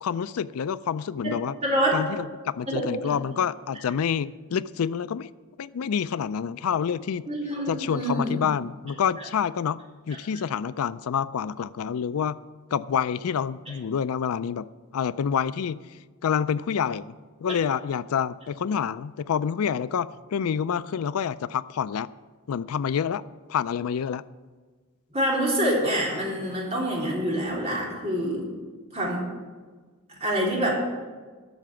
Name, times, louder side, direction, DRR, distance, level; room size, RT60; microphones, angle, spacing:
voice 1, 0.0-1.5 1.9-5.3 5.6-7.2 7.7-9.8 10.1-12.4 12.7-14.7 14.9-15.8 16.2-17.1 17.4-22.1 22.5-23.2 23.5-24.2, left 7 dB, 90° left, 16 dB, 0.4 m, -27 dB
voice 2, 1.6-2.0 2.7-3.1 7.2-8.4 25.1-28.5 28.9-29.2 30.2-30.7, equal, 30° right, -4 dB, 3.6 m, -26 dB
12.5 x 6.9 x 7.5 m, 1.4 s
head